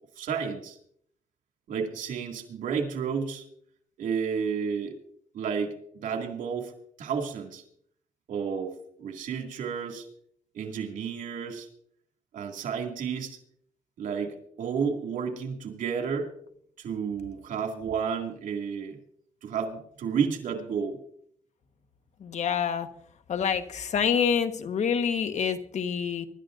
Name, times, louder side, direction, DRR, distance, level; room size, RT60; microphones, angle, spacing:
voice 1, 0.2-0.8 1.7-3.4 4.0-5.0 5.3-6.7 7.0-7.6 8.3-10.1 10.5-11.7 12.3-13.4 14.0-16.3 16.8-19.0 19.4-21.0, right 6 dB, 85° right, 4 dB, 2.2 m, -31 dB
voice 2, 22.2-22.9 23.3-26.3, left 7 dB, 60° left, 9 dB, 1.3 m, -27 dB
24.5 x 12.5 x 2.6 m, 0.67 s
cardioid pair, 90°, 13 cm